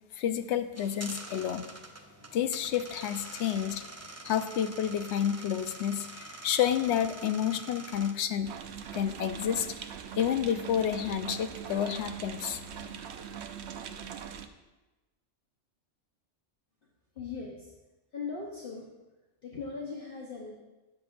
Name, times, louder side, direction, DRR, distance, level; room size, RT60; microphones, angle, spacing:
voice 1, 0.1-1.7 2.3-3.8 4.2-8.5 8.9-9.8 10.2-12.6, left 9 dB, 75° left, 10 dB, 0.9 m, -30 dB
sound 1, 0.8-8.1, right 2 dB, 20° right, 0.5 m, -45 dB
sound 2, 8.4-14.5, right 8 dB, 70° right, 0.9 m, -42 dB
voice 2, 17.1-17.7 18.1-18.9 19.4-20.5, left 4 dB, 50° left, -3 dB, 1.2 m, -39 dB
13.0 x 8.6 x 2.6 m, 1.1 s
omnidirectional pair, 1.2 m